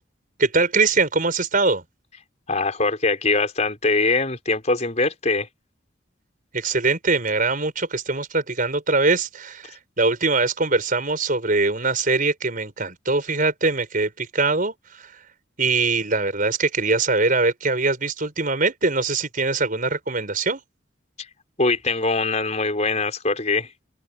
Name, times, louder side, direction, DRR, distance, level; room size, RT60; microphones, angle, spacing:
voice 1, 0.4-1.8 6.5-15.2 15.6-20.6, right 3 dB, 45° right, 5.4 m, -22 dB
voice 2, 2.5-5.5 21.6-23.7, left 3 dB, 35° left, 4.4 m, -22 dB
open air
head